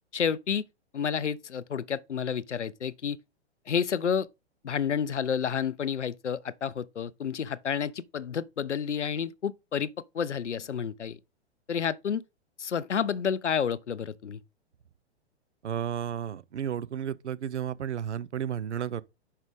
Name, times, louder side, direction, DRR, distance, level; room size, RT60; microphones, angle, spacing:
voice 1, 0.1-0.7 0.9-3.2 3.7-4.3 4.6-11.2 11.7-12.2 12.6-14.4, left 7 dB, 90° left, 0.5 m, -30 dB
voice 2, 15.6-19.0, right 9 dB, 80° right, 0.6 m, -32 dB
5.5 x 4.9 x 5.1 m
figure-of-eight pair, 110°, 34 cm